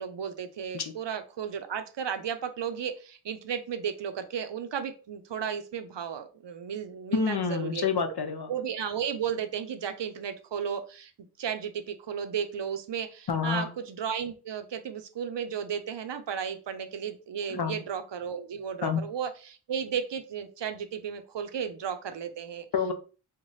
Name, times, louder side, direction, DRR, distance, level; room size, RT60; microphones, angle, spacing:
voice 1, 0.0-7.8 8.5-11.1 11.4-22.7, right 7 dB, 75° right, 0.6 m, -34 dB
voice 2, 7.1-8.5 13.3-13.7 17.5-17.8 18.8-19.0 22.7-22.9, left 6 dB, 65° left, 0.6 m, -28 dB
3.1 x 2.2 x 3.9 m
wide cardioid pair, 50°, 43 cm